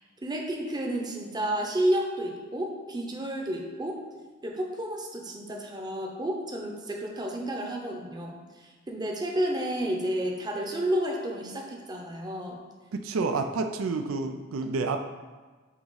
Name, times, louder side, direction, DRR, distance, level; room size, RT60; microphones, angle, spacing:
voice 1, 0.2-4.0 4.4-12.6 13.2-13.3, right 1 dB, 20° right, 1 dB, 0.7 m, -31 dB
voice 2, 12.9-15.0, right 3 dB, 85° right, 6 dB, 0.4 m, -29 dB
8.5 x 2.9 x 3.9 m, 1.3 s
head